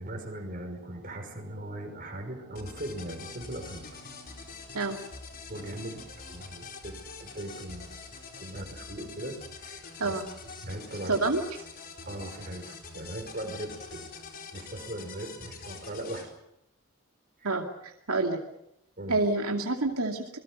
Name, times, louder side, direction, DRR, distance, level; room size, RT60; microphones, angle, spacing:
voice 1, 0.0-4.5 5.5-6.9 7.2-7.9 8.4-10.2 10.6-11.2 12.0-14.1 14.5-16.3 17.4-17.5 19.0-19.2, right 1 dB, 40° right, 4 dB, 5.6 m, -39 dB
sound 1, 2.6-16.3, left 4 dB, 40° left, 4.3 m, -45 dB
voice 2, 11.1-11.4 17.4-18.4 19.1-20.4, right 3 dB, 85° right, 2 dB, 2.5 m, -28 dB
27.5 x 22.0 x 6.5 m, 0.81 s
head